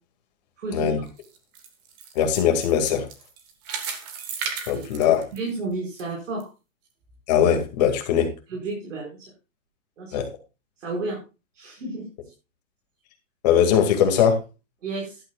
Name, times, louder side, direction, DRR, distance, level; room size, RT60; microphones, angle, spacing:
voice 1, 0.6-0.9 4.7-4.8 5.3-6.5 8.5-9.3 10.0-10.2 10.8-11.2 11.5-12.0 14.8-15.2, right 3 dB, 65° right, -1 dB, 5.0 m, -31 dB
sound 1, 1.1-6.0 6.4-6.5 7.1-7.2, right 6 dB, 15° right, 0.9 m, -35 dB
voice 2, 2.2-3.0 4.7-5.2 7.3-8.3 10.1-10.3 13.4-14.4, left 8 dB, 30° left, 4 dB, 2.1 m, -20 dB
14.0 x 11.5 x 2.3 m, 0.28 s
hypercardioid pair, 175°, 40 cm